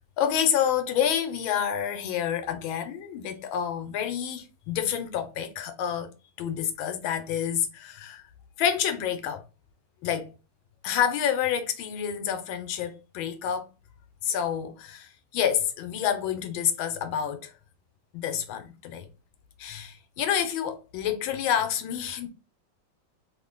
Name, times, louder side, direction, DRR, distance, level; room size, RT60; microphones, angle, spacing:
voice 1, 0.2-6.1 6.4-8.3 8.6-9.4 10.0-10.3 10.8-13.7 14.2-17.5 18.1-19.1 19.6-22.3, left 9 dB, 85° left, 1.4 m, -28 dB
3.5 x 2.1 x 3.7 m
omnidirectional pair, 2.2 m